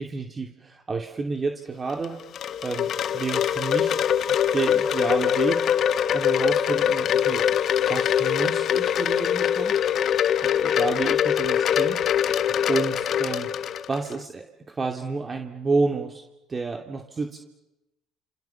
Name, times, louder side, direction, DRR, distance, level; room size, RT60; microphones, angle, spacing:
voice 1, 0.0-2.2 2.6-4.0 4.3-5.6 6.1-7.4 7.9-9.8 10.4-13.5 13.9-16.2 16.5-17.4, right 4 dB, 30° right, 4 dB, 2.6 m, -30 dB
Wind chime, 1.9-14.2, left 9 dB, 55° left, 1.3 m, -23 dB
28.0 x 27.5 x 7.2 m, 0.95 s
hypercardioid pair, 70°, 0 cm